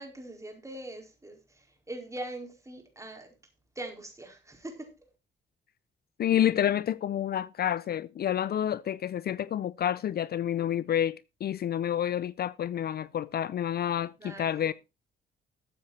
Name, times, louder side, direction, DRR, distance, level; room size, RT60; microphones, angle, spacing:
voice 1, 0.0-3.3 3.8-4.9 14.2-14.7, right 1 dB, 15° right, 4.6 m, -42 dB
voice 2, 6.2-14.7, left 10 dB, 50° left, 0.5 m, -29 dB
13.5 x 8.3 x 4.2 m
cardioid pair, 90°, 20 cm